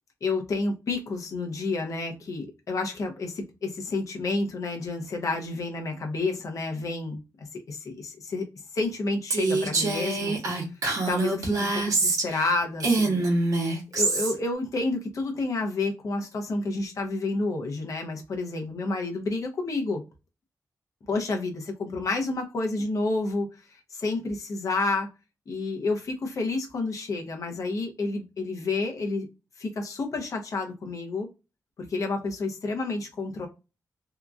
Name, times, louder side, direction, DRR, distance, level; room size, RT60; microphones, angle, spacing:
voice 1, 0.2-8.4 8.7-10.4 11.1-13.2 13.9-20.0 21.1-23.5 23.9-25.1 25.5-29.3 29.6-31.3 31.8-33.5, left 3 dB, 60° left, 3 dB, 0.7 m, -30 dB
Female speech woman speaking, 9.3-12.5 12.8-14.3, right 3 dB, 65° right, 0.9 m, -25 dB
2.8 x 2.4 x 2.3 m, 0.28 s
wide cardioid pair, 130°, 6 cm